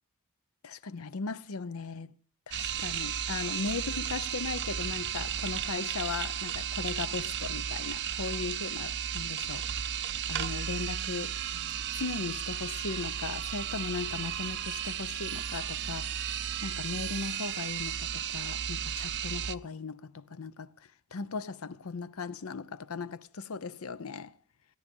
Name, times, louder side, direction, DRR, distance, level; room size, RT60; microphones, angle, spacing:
voice 1, 0.6-2.1 2.5-11.3 11.9-24.3, left 4 dB, 75° left, 0.7 m, -38 dB
sound 1, 2.5-19.6, right 9 dB, 50° right, 0.5 m, -34 dB
17.0 x 11.0 x 5.4 m
head